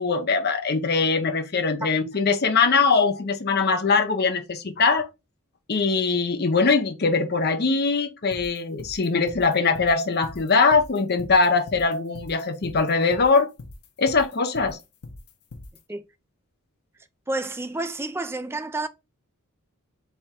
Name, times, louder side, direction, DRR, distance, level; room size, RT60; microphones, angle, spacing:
voice 1, 0.0-5.1 5.7-13.5 14.0-14.8, left 4 dB, 45° left, 0.7 m, -22 dB
sound 1, 8.3-15.8, left 2 dB, 80° left, 1.0 m, -41 dB
voice 2, 17.3-18.9, right 2 dB, 10° right, 0.3 m, -29 dB
3.5 x 3.5 x 4.4 m
head